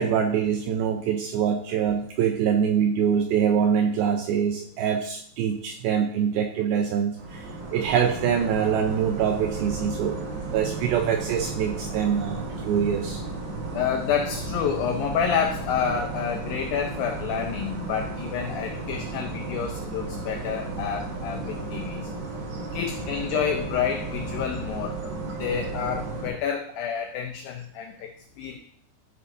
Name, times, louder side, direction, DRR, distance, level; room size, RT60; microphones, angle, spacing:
voice 1, 0.0-10.2 10.5-13.2 22.5-22.6, right 8 dB, 80° right, 4 dB, 2.2 m, -24 dB
sound 1, 7.2-26.3, right 3 dB, 60° right, 3.8 m, -34 dB
voice 2, 13.7-22.1 22.7-28.1 28.4-28.6, left 7 dB, 90° left, 5 dB, 2.0 m, -29 dB
13.5 x 8.1 x 2.6 m, 0.65 s
omnidirectional pair, 5.0 m